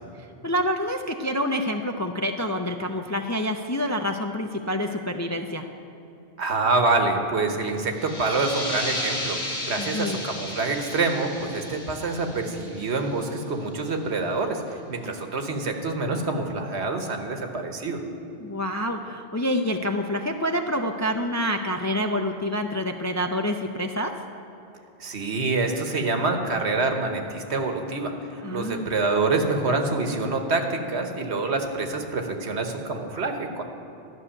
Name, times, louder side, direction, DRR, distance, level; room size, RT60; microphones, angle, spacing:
voice 1, 0.4-5.7 9.8-10.2 18.4-24.1 28.4-28.9, equal, 25° left, 4 dB, 0.4 m, -27 dB
voice 2, 6.4-18.0 25.0-33.6, right 3 dB, 75° right, 5 dB, 1.4 m, -26 dB
sound 1, 7.9-13.3, left 1 dB, 75° left, 2.1 m, -34 dB
12.5 x 6.5 x 9.8 m, 2.9 s
omnidirectional pair, 1.1 m